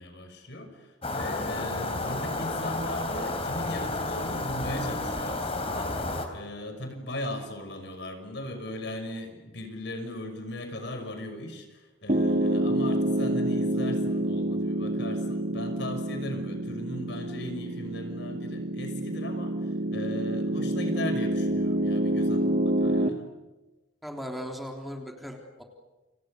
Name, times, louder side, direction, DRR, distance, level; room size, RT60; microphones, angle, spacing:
voice 1, 0.0-23.3, left 1 dB, 65° left, 6 dB, 6.0 m, -38 dB
sound 1, 1.0-6.3, left 2 dB, 30° left, 3.7 m, -31 dB
Piano, 12.1-23.1, right 1 dB, 45° right, 1.8 m, -28 dB
voice 2, 24.0-25.6, equal, ahead, 1 dB, 3.6 m, -38 dB
30.0 x 28.5 x 6.6 m, 1.1 s
head